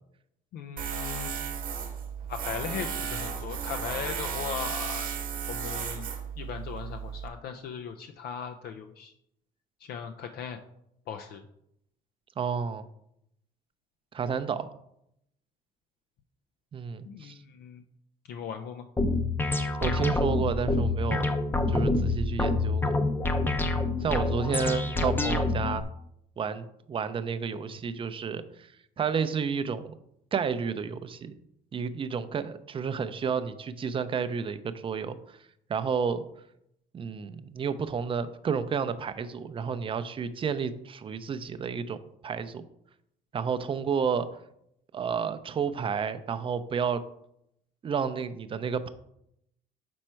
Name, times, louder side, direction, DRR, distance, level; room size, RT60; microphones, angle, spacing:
voice 1, 0.5-1.4 2.3-5.1 5.5-6.1 6.4-9.1 9.8-10.6 11.1-11.5 17.0-17.8 18.3-18.9, left 7 dB, 65° left, 6 dB, 0.5 m, -38 dB
Tools, 0.8-7.3, right 7 dB, 55° right, 1.0 m, -34 dB
voice 2, 12.4-12.8 14.1-14.7 16.7-17.4 19.8-21.4 21.7-23.0 24.0-25.8 26.4-28.7 29.0-29.9 30.3-31.3 31.7-35.2 35.7-36.2 36.9-42.0 42.2-42.6 43.3-44.3 44.9-47.0 47.8-48.9, right 6 dB, 30° right, 12 dB, 0.5 m, -31 dB
sound 1, 19.0-25.8, left 3 dB, 10° left, 0.6 m, -27 dB
6.2 x 4.3 x 4.5 m, 0.77 s
cardioid pair, 110°, 17 cm